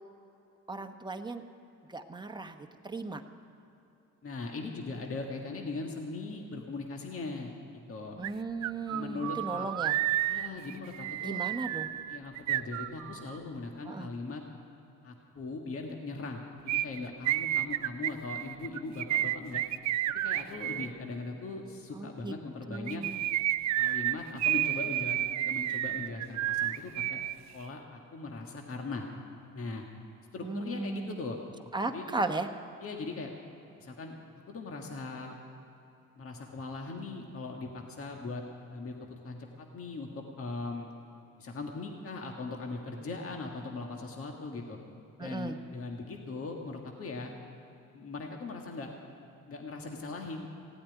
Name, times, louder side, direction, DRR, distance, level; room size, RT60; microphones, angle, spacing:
voice 1, 0.7-1.4 1.9-2.6 2.8-3.2 8.2-10.0 11.2-11.9 13.9-14.1 21.9-22.4 22.7-23.2 30.4-31.2 31.7-32.5 45.2-45.6, right 3 dB, 15° right, 6 dB, 1.1 m, -36 dB
voice 2, 4.2-8.2 8.9-9.7 10.3-11.4 12.1-14.4 15.0-19.6 20.1-23.0 23.8-27.2 27.5-29.1 29.5-29.8 30.3-31.4 31.9-32.1 32.8-33.3 33.8-34.2 34.5-35.3 36.2-38.4 38.7-40.1 40.4-40.9 41.4-44.8 45.2-47.3 47.9-48.9 49.5-50.5, left 3 dB, 50° left, 1 dB, 1.7 m, -39 dB
sound 1, 8.2-8.3 8.6-13.4 16.7-20.9 22.7-27.3 27.6-27.7, right 13 dB, 65° right, 0.5 m, -31 dB
16.5 x 8.7 x 10.0 m, 2.8 s
cardioid pair, 90°, 30 cm